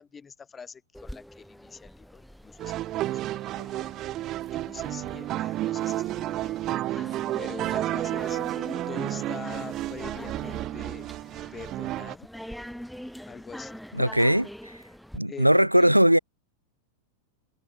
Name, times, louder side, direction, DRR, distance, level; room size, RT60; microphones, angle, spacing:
voice 1, 0.0-3.9 4.5-8.4 8.9-11.1 11.5-12.3 13.2-14.5 15.3-16.0, left 6 dB, 15° left, 4.8 m, -44 dB
sound 1, 0.9-15.2, equal, ahead, 1.0 m, -44 dB
sound 2, 2.6-12.2, right 15 dB, 35° right, 1.2 m, -31 dB
voice 2, 13.9-14.4 15.1-16.2, right 1 dB, 90° right, 0.8 m, -19 dB
figure-of-eight pair, 90°, 0 cm